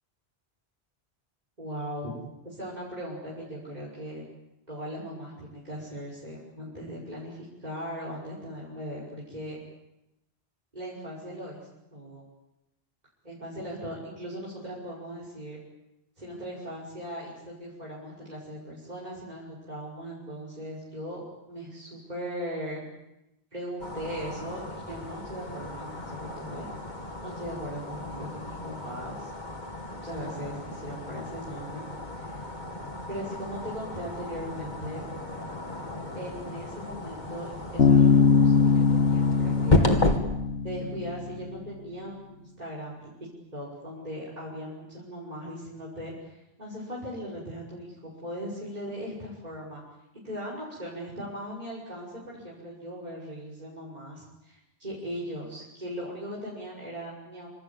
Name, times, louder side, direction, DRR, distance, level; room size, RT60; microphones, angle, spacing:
voice 1, 1.6-2.2 2.4-4.2 4.7-9.6 10.7-11.6 11.9-12.2 13.2-15.6 16.2-22.8 23.5-26.7 27.2-29.3 30.0-31.9 32.1-32.4 33.1-35.0 36.1-40.1 40.6-49.8 50.2-57.5, equal, 40° right, -4 dB, 6.0 m, -39 dB
sound 1, 23.8-40.2, left 2 dB, 45° left, 2.6 m, -33 dB
Bass guitar, 37.8-41.4, left 5 dB, 85° left, 1.7 m, -21 dB
27.0 x 26.5 x 7.3 m, 0.90 s
omnidirectional pair, 1.1 m